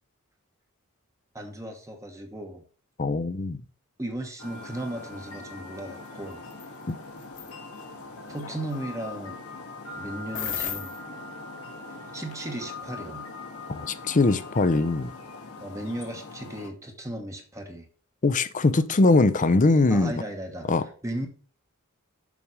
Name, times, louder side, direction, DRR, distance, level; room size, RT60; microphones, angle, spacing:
voice 1, 1.3-2.6 4.0-6.4 8.3-9.4 10.0-10.9 12.1-13.2 15.6-17.9 19.9-20.7 21.0-21.3, right 1 dB, 15° right, 1.1 m, -36 dB
voice 2, 3.0-3.6 6.9-7.0 13.7-15.1 18.2-20.1 20.7-20.8, left 3 dB, 35° left, 0.5 m, -21 dB
sound 1, 4.4-16.7, left 3 dB, 85° left, 1.7 m, -41 dB
sound 2, 6.5-6.7 7.2-7.5 10.3-11.0, left 9 dB, 55° left, 1.4 m, -32 dB
7.1 x 5.1 x 4.8 m
head